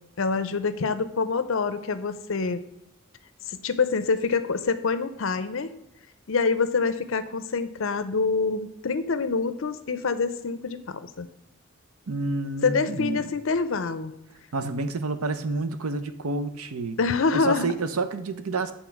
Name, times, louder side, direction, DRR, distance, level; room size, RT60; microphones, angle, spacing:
voice 1, 0.2-2.6 3.5-5.7 6.3-11.3 12.6-14.1 17.0-17.7, left 4 dB, 65° left, 12 dB, 0.6 m, -26 dB
voice 2, 12.1-13.3 14.5-17.0 17.3-18.7, right 3 dB, 90° right, 10 dB, 0.7 m, -29 dB
8.1 x 3.8 x 5.8 m, 0.85 s
head